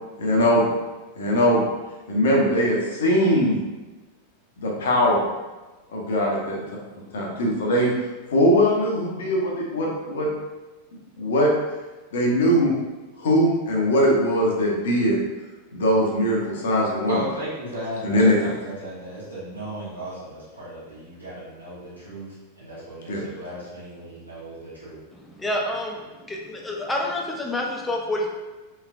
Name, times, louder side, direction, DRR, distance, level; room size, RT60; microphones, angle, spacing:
voice 1, 0.2-0.6 1.2-1.7 2.1-3.6 4.6-5.2 5.9-6.6 7.1-7.9 8.3-10.3 11.2-11.5 12.1-12.7 13.2-15.2 15.7-17.2 18.0-18.4 23.1-23.2, equal, 60° left, -2 dB, 0.7 m, -21 dB
voice 2, 17.1-22.3 22.6-25.0, right 1 dB, 90° right, -11 dB, 1.2 m, -36 dB
voice 3, 25.1-28.3, left 1 dB, 10° left, 0 dB, 0.5 m, -28 dB
3.2 x 3.2 x 2.4 m, 1.2 s
figure-of-eight pair, 90°, 0 cm